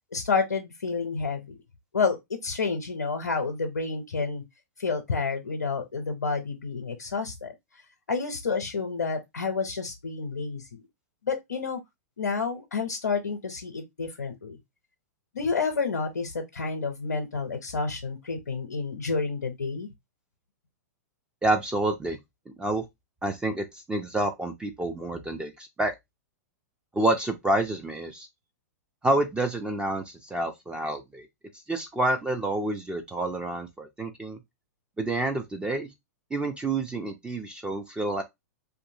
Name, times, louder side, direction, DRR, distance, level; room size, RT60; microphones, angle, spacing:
voice 1, 0.1-1.6 1.9-2.2 2.4-4.4 4.8-7.5 8.1-10.8 11.2-11.8 12.2-14.6 15.3-19.9, left 4 dB, 85° left, 0.6 m, -29 dB
voice 2, 21.4-22.2 22.6-22.9 23.2-25.9 26.9-28.3 29.0-31.3 31.7-34.4 35.0-35.9 36.3-38.2, right 2 dB, 10° right, 0.4 m, -28 dB
2.7 x 2.5 x 2.6 m
hypercardioid pair, 110°, 9 cm